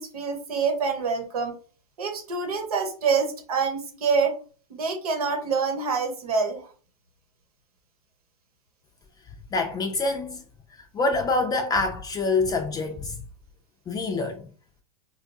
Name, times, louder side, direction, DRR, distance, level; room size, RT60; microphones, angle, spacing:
voice 1, 0.0-1.6 2.0-4.3 4.7-6.6, right 5 dB, 90° right, 1.2 m, -26 dB
voice 2, 9.5-10.4 10.9-13.2 13.9-14.4, left 3 dB, 20° left, 0.4 m, -26 dB
4.4 x 2.3 x 2.6 m
supercardioid pair, 120°, 18 cm